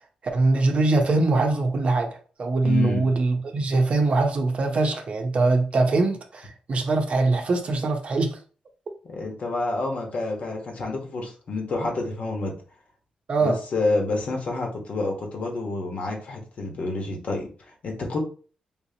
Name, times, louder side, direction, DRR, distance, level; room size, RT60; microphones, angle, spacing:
voice 1, 0.3-8.4 13.3-13.6, right 3 dB, 50° right, 0.7 m, -22 dB
voice 2, 2.6-3.1 9.1-12.5 13.4-17.5 17.8-18.2, left 3 dB, 55° left, 1.2 m, -28 dB
3.7 x 2.9 x 2.8 m
cardioid pair, 85°, 3 cm